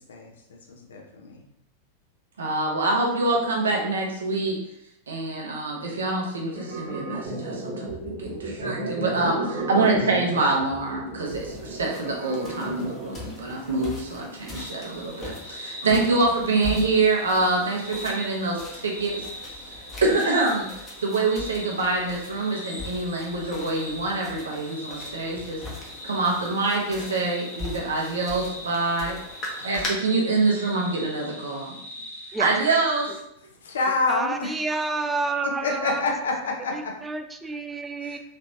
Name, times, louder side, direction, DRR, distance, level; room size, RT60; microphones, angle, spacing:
voice 1, 0.7-1.5 33.6-34.3 35.6-36.3 36.6-36.7 38.0-38.2, left 3 dB, 65° left, 1 dB, 0.6 m, -27 dB
voice 2, 2.4-4.6 5.1-19.2 20.0-20.7 21.0-25.6 26.0-29.2 29.5-31.7 32.4-33.2, right 3 dB, 70° right, -1 dB, 0.8 m, -25 dB
sound 1, 6.5-13.3, right 1 dB, 35° right, 1.2 m, -33 dB
sound 2, 11.3-29.9, left 2 dB, 25° left, 0.9 m, -40 dB
sound 3, 14.5-33.1, left 1 dB, 85° left, 1.1 m, -41 dB
voice 3, 34.1-36.0 36.7-38.2, right 3 dB, 10° right, 5 dB, 0.3 m, -29 dB
3.2 x 3.0 x 2.6 m, 0.75 s
figure-of-eight pair, 90°, 0 cm